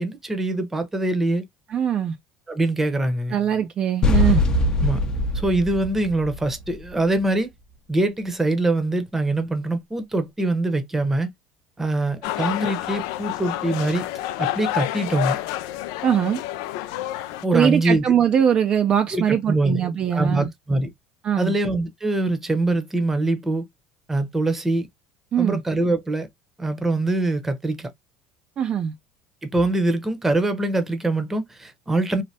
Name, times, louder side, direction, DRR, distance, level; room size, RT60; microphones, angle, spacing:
voice 1, 0.0-1.4 2.5-3.4 4.8-5.0 5.3-7.5 7.9-11.3 11.8-14.1 14.4-15.4 17.4-18.0 19.1-19.8 20.1-20.9 21.4-23.6 24.1-24.9 25.4-26.3 26.6-27.9 29.4-32.2, right 2 dB, 15° right, 0.7 m, -23 dB
voice 2, 1.7-2.2 3.3-4.4 16.0-16.4 17.5-20.5 21.2-21.5 25.3-25.6 28.6-28.9, right 9 dB, 40° right, 0.4 m, -21 dB
sound 1, 4.0-7.0, left 1 dB, 30° left, 0.6 m, -22 dB
sound 2, 12.2-17.4, left 14 dB, 80° left, 0.3 m, -29 dB
3.2 x 2.0 x 2.6 m
supercardioid pair, 110°, 2 cm